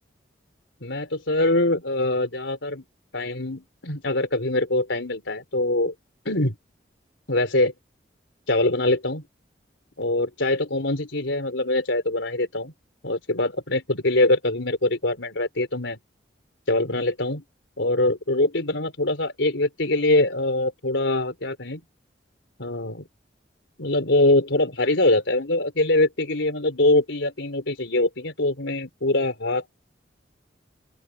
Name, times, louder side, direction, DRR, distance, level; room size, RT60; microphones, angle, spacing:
voice 1, 0.8-2.8 3.1-5.9 6.3-6.5 7.3-7.7 8.5-9.2 10.0-12.7 13.0-16.0 16.7-17.4 17.8-21.8 22.6-23.1 23.8-29.6, left 2 dB, 90° left, 4.3 m, -23 dB
open air
head